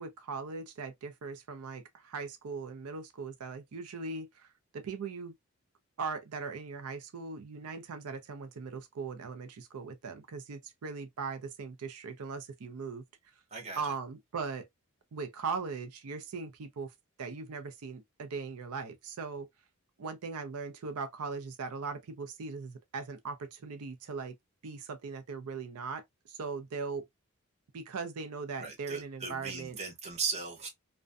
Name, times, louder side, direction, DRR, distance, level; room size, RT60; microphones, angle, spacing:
voice 1, 0.0-4.5 4.7-5.3 6.0-13.0 13.8-14.7 15.1-16.9 17.2-19.5 20.0-24.3 24.6-27.0 27.7-29.8, right 4 dB, 85° right, 0.5 m, -39 dB
voice 2, 13.5-13.9 28.6-30.7, right 5 dB, 30° right, 0.7 m, -37 dB
2.5 x 2.1 x 2.4 m
head